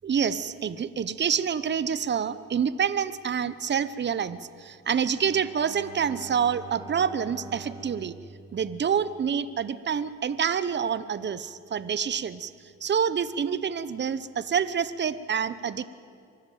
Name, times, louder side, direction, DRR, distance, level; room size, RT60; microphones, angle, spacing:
voice 1, 0.0-8.1 8.5-12.5 12.8-15.8, right 7 dB, 35° right, 15 dB, 0.9 m, -27 dB
Bowed string instrument, 5.1-9.6, right 3 dB, 15° right, 2.5 m, -45 dB
24.0 x 13.5 x 9.2 m, 2.2 s
cardioid pair, 90°, 30 cm